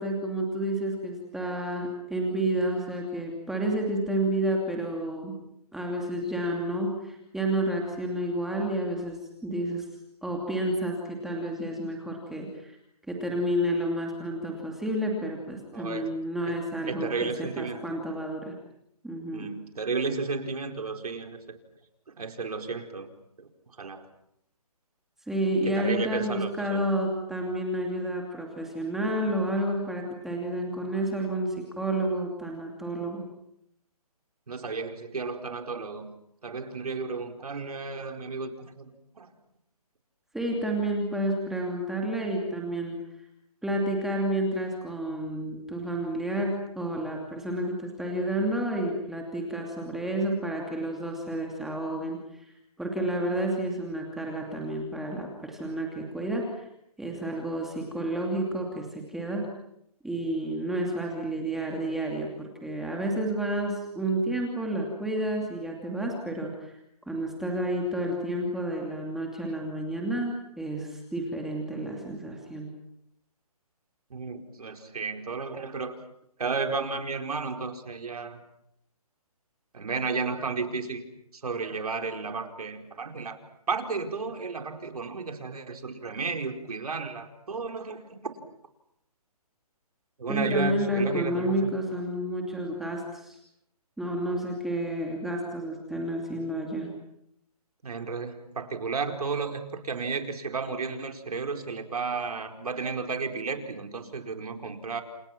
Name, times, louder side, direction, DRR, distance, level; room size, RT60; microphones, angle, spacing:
voice 1, 0.0-5.4 5.7-9.9 10.2-12.8 13.1-18.5 19.0-19.5 25.3-33.2 40.3-43.0 43.6-52.5 52.8-56.7 57.0-59.5 60.0-66.7 67.1-72.7 90.3-93.4 94.0-96.9, right 1 dB, ahead, 0 dB, 2.7 m, -30 dB
voice 2, 15.7-16.1 16.5-16.6 16.9-17.8 19.3-21.4 22.2-23.1 23.4-23.5 23.8-24.1 25.6-26.8 34.5-36.1 36.4-38.9 39.2-39.3 74.1-76.0 76.4-78.4 79.7-81.0 81.3-83.4 83.7-88.2 90.2-91.7 97.8-105.0, right 4 dB, 75° right, 5 dB, 4.6 m, -33 dB
29.5 x 29.0 x 6.0 m, 0.77 s
hypercardioid pair, 160°, 20 cm